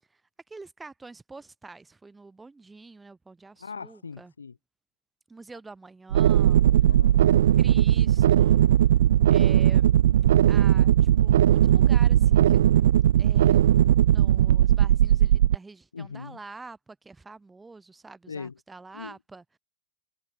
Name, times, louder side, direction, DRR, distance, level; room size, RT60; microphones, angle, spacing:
voice 1, 0.5-4.3 5.3-6.6 7.6-8.6 9.3-9.9 10.5-12.6 13.2-13.7 14.1-19.4, right 3 dB, 10° right, 2.9 m, -46 dB
voice 2, 3.6-4.6 6.7-7.2 15.9-16.4 18.3-18.5 18.9-19.1, left 5 dB, 75° left, 4.5 m, -39 dB
sound 1, 6.1-15.5, right 11 dB, 60° right, 0.5 m, -19 dB
figure-of-eight pair, 90°, 0 cm